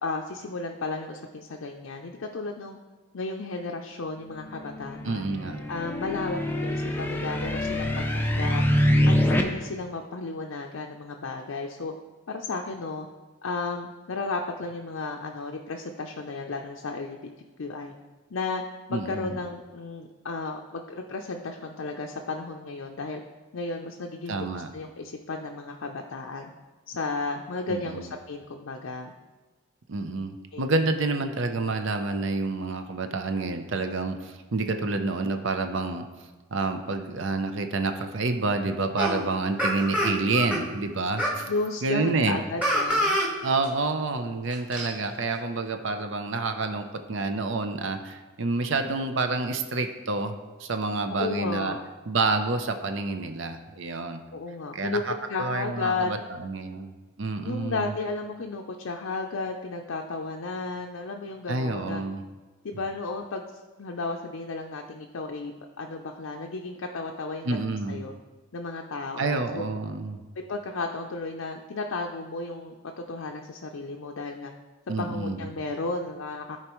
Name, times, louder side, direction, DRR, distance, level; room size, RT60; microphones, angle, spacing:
voice 1, 0.0-2.8 3.1-5.3 5.7-8.6 9.1-11.9 12.3-13.1 13.4-17.3 17.6-17.9 18.3-18.6 18.9-23.2 23.5-26.5 26.9-29.1 30.5-30.8 41.5-43.2 51.1-51.8 54.3-55.0 55.3-56.1 57.4-62.0 62.6-63.5 63.8-68.1 68.5-69.6 70.5-74.5 75.0-76.6, left 3 dB, 70° left, 2 dB, 0.5 m, -33 dB
sound 1, 4.4-9.4, equal, 10° left, 0.5 m, -25 dB
voice 2, 5.0-5.6 18.9-19.4 24.3-24.7 27.7-28.1 29.9-36.1 36.5-41.5 41.8-42.4 43.4-50.3 50.6-51.8 52.1-54.2 54.7-57.9 61.5-62.2 67.4-68.0 69.2-70.2 74.9-75.5, right 3 dB, 60° right, 7 dB, 0.6 m, -28 dB
sound 2, 39.0-39.1 39.6-40.6 41.2-41.4 42.6-43.3 43.6-43.7 44.5-44.9, equal, 5° right, 1.2 m, -25 dB
13.5 x 4.5 x 3.0 m, 1.3 s
head